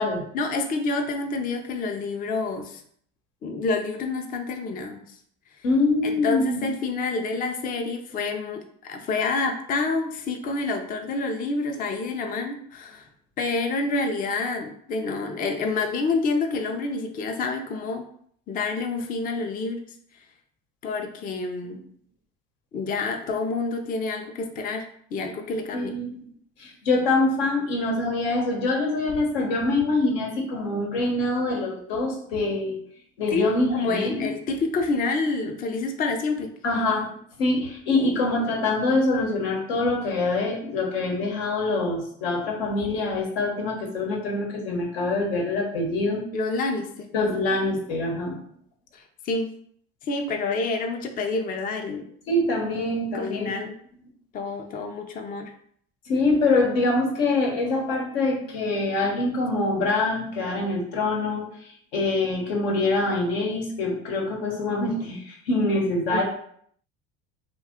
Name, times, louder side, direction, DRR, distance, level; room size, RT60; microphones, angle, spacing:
voice 1, 0.3-2.8 3.4-5.2 6.0-13.1 13.4-18.0 18.5-19.8 20.8-21.8 22.7-26.0 33.3-36.5 46.3-47.1 48.9-49.5 50.0-52.0 53.1-53.7 54.3-55.5 66.1-66.2, left 3 dB, 30° left, 4 dB, 0.4 m, -28 dB
voice 2, 5.6-6.6 21.6-21.7 25.7-26.2 26.6-32.7 33.2-34.3 36.6-37.1 37.4-46.2 47.1-48.4 52.3-53.5 56.1-66.2, left 2 dB, 85° left, 0 dB, 1.0 m, -24 dB
2.6 x 2.3 x 3.5 m, 0.63 s
supercardioid pair, 90°, 30 cm